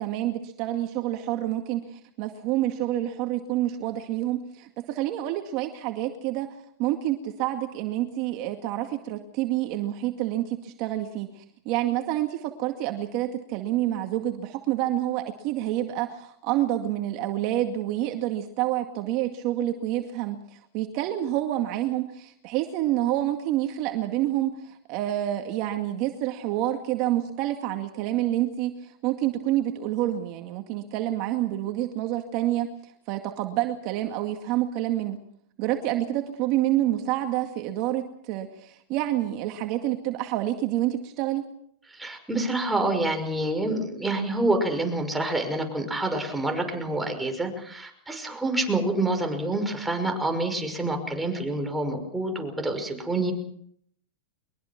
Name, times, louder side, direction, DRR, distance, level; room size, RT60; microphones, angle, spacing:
voice 1, 0.0-6.5 6.8-32.7 33.1-35.2 35.6-41.5, right 13 dB, 45° right, 5 dB, 2.1 m, -28 dB
voice 2, 41.9-53.3, right 2 dB, 5° right, 5 dB, 5.7 m, -27 dB
23.0 x 22.5 x 6.0 m, 0.68 s
hypercardioid pair, 130°, 0 cm